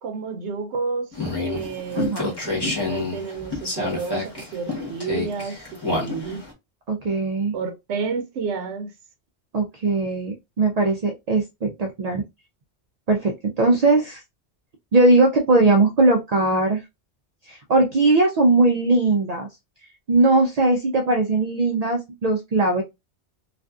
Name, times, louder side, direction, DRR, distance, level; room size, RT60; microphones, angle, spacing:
voice 1, 0.0-1.1 1.4-6.4 7.5-8.9, right 5 dB, 85° right, 0.9 m, -30 dB
sound 1, 1.1-6.5, left 2 dB, 25° left, 0.9 m, -29 dB
voice 2, 2.0-2.3 6.9-7.5 9.5-12.2 13.1-14.2 14.9-16.8 17.4-19.5 20.1-22.8, right 2 dB, 60° right, 0.4 m, -19 dB
2.5 x 2.4 x 2.3 m
omnidirectional pair, 1.2 m